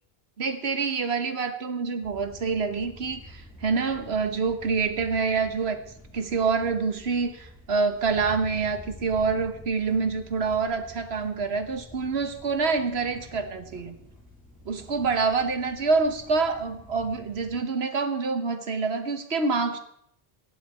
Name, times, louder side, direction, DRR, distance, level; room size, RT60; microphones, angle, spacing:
voice 1, 0.4-5.8 6.1-13.9 14.6-19.8, right 4 dB, 85° right, 8 dB, 1.5 m, -26 dB
sound 1, 2.0-17.5, equal, 10° left, 5.9 m, -48 dB
17.0 x 10.0 x 4.3 m, 0.74 s
omnidirectional pair, 1.0 m